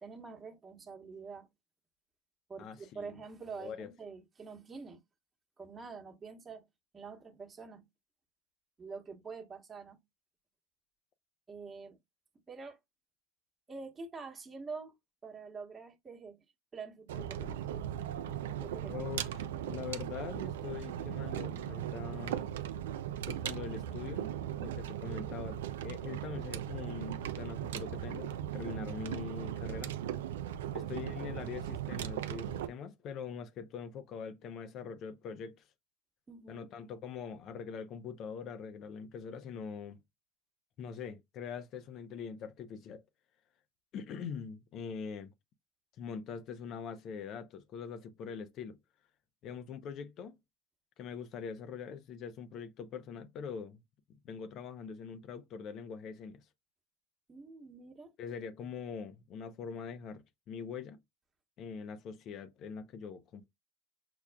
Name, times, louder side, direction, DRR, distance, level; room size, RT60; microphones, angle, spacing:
voice 1, 0.0-1.5 2.5-5.0 5.6-6.7 6.9-7.8 8.8-10.0 11.5-12.0 12.5-12.8 13.7-15.0 15.2-16.4 16.7-17.6 18.5-19.1 25.1-25.4 30.6-30.9 36.3-36.7 57.3-58.1, right 4 dB, 30° right, 1.1 m, -46 dB
voice 2, 2.6-3.1 3.6-3.9 18.9-19.3 19.7-22.5 23.3-24.3 24.6-30.0 30.7-35.6 36.5-40.0 40.8-43.0 43.9-45.3 46.0-48.8 49.4-50.4 51.0-53.8 54.2-56.4 58.2-61.0 61.6-63.5, left 6 dB, 55° left, 0.6 m, -43 dB
sound 1, 17.1-32.7, right 11 dB, 85° right, 0.3 m, -38 dB
5.9 x 2.3 x 2.2 m
hypercardioid pair, 85°, 0 cm